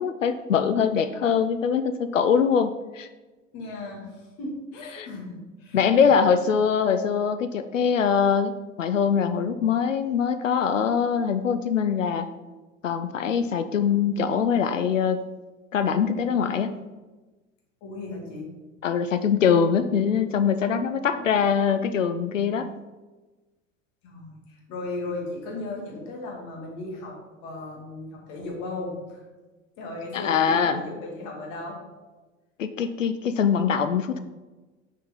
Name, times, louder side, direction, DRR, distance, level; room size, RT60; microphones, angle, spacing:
voice 1, 0.0-3.1 4.9-5.1 5.7-12.3 12.8-15.2 15.7-16.7 18.8-22.7 30.1-30.8 32.6-34.2, left 7 dB, 80° left, 10 dB, 0.5 m, -23 dB
voice 2, 3.5-6.1 17.8-18.5 21.1-21.4 24.0-27.2 27.4-29.2 29.8-31.8, left 2 dB, 50° left, -1 dB, 2.6 m, -36 dB
6.5 x 5.5 x 5.3 m, 1.2 s
figure-of-eight pair, 70°, 38 cm